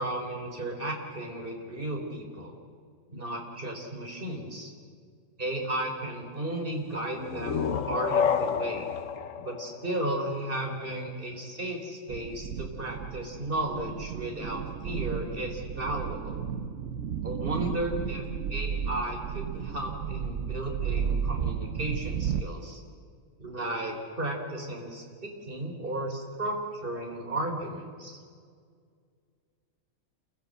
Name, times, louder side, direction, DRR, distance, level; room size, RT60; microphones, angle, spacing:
voice 1, 0.0-2.5 3.1-4.7 5.4-8.9 9.4-16.4 17.2-22.8 23.4-28.2, right 1 dB, 45° right, 1 dB, 4.1 m, -34 dB
sound 1, 7.1-10.7, left 7 dB, 85° left, 1.3 m, -30 dB
sound 2, 12.1-22.4, right 7 dB, 90° right, 1.2 m, -33 dB
28.5 x 15.5 x 7.8 m, 2.1 s
omnidirectional pair, 1.3 m